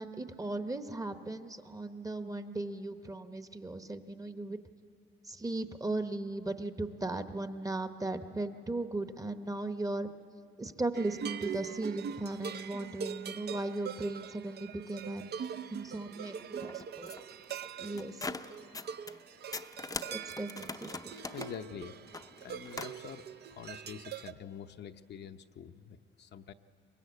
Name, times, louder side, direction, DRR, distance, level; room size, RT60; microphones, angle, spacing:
voice 1, 0.0-4.6 5.3-10.1 10.6-15.3 15.7-17.1 17.8-18.3 20.1-21.1, right 2 dB, 15° right, 9 dB, 0.9 m, -37 dB
sound 1, 10.9-24.3, right 8 dB, 55° right, 0.6 m, -43 dB
sound 2, 16.4-19.2 19.5-23.0, left 3 dB, 15° left, 0.6 m, -43 dB
voice 2, 21.1-22.0 22.4-23.2 23.5-26.5, left 8 dB, 60° left, 7 dB, 0.7 m, -46 dB
23.0 x 20.0 x 8.3 m, 2.6 s
cardioid pair, 90°, 20 cm